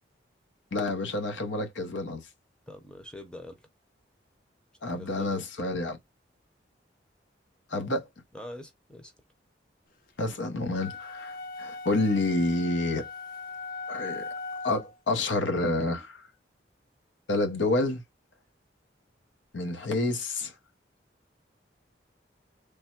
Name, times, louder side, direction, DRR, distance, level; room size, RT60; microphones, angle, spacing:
voice 1, 0.7-2.3 4.8-6.0 7.7-8.1 10.2-13.1 13.9-14.2 14.6-16.3 17.3-18.0 19.5-20.5, left 2 dB, 85° left, 0.7 m, -28 dB
voice 2, 2.7-3.7 5.0-5.5 8.3-9.1, left 1 dB, 5° left, 0.6 m, -44 dB
sound 1, 10.7-15.0, left 4 dB, 50° left, 0.4 m, -39 dB
3.4 x 2.1 x 4.3 m
head